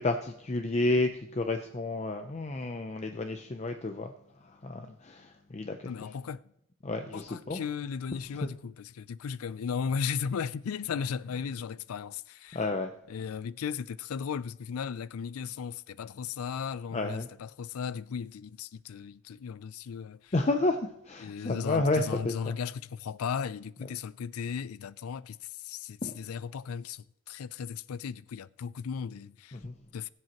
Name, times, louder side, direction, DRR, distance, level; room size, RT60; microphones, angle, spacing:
voice 1, 0.0-4.1 4.4-5.9 6.8-7.6 8.4-8.5 12.5-12.9 16.9-17.3 20.3-22.6 26.0-26.2 29.5-29.8, left 2 dB, 30° left, 0.5 m, -31 dB
voice 2, 5.9-6.4 7.1-12.6 13.1-20.3 21.2-29.6 29.9-30.1, left 6 dB, 85° left, 0.4 m, -36 dB
21.5 x 7.7 x 3.0 m
head